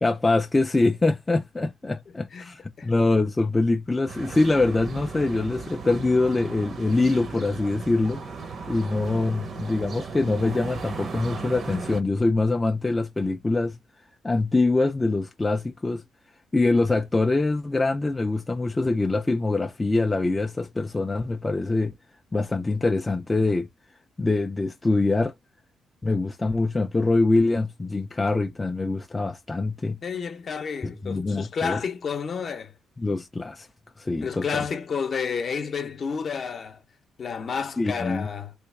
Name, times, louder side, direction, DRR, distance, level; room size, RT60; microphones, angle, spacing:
voice 1, 0.0-8.2 8.7-13.8 14.2-16.0 16.5-21.9 22.3-23.7 24.2-25.3 26.0-30.0 30.8-31.8 33.0-33.7 34.0-34.6 37.8-38.3, left 2 dB, 20° left, 0.3 m, -24 dB
voice 2, 2.3-2.9 30.0-32.7 34.2-36.8 37.2-38.5, left 6 dB, 50° left, 0.7 m, -30 dB
sound 1, 4.1-12.0, right 5 dB, 50° right, 0.6 m, -36 dB
3.2 x 2.3 x 3.2 m
cardioid pair, 90°, 0 cm